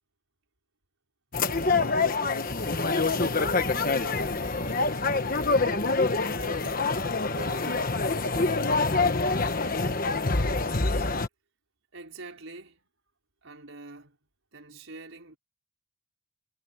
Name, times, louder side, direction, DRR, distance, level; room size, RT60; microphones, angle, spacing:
sound 1, 1.3-11.3, left 3 dB, 40° left, 1.3 m, -26 dB
voice 1, 1.4-5.4 6.0-9.6, right 2 dB, 85° right, 5.4 m, -46 dB
voice 2, 11.9-12.9 13.4-14.2 14.5-15.4, right 3 dB, 70° right, 5.1 m, -45 dB
head